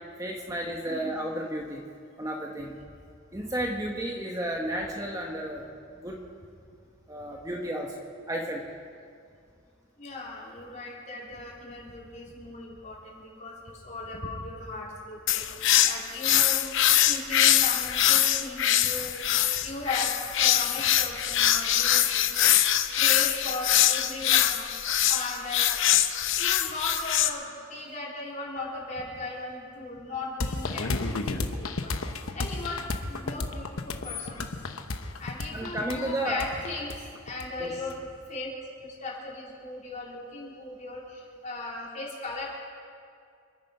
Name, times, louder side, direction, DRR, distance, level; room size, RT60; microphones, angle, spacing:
voice 1, 0.2-1.9 2.2-2.8 3.3-6.2 7.1-8.0 8.3-8.7 35.5-36.4 37.6-37.7, right 1 dB, 15° right, 0 dB, 1.1 m, -32 dB
voice 2, 0.9-1.2 10.0-16.7 17.0-22.7 23.0-25.8 26.4-32.0 32.3-34.5 35.2-38.5 38.8-42.5, left 2 dB, 35° left, -4 dB, 3.9 m, -37 dB
sound 1, 15.3-27.3, left 11 dB, 65° left, 0.7 m, -23 dB
sound 2, 30.4-37.9, left 3 dB, 90° left, 1.0 m, -32 dB
27.0 x 9.5 x 5.4 m, 2.3 s
head